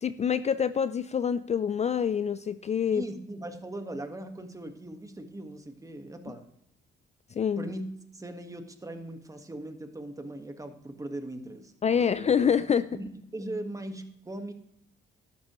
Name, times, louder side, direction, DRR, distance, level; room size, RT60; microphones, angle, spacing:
voice 1, 0.0-3.0 7.3-7.7 11.8-12.9, left 7 dB, 35° left, 14 dB, 0.4 m, -26 dB
voice 2, 2.9-6.5 7.6-7.9 8.1-12.3 12.9-14.5, right 1 dB, 15° right, 6 dB, 1.5 m, -39 dB
12.5 x 11.5 x 3.1 m, 0.80 s
cardioid pair, 90°, 20 cm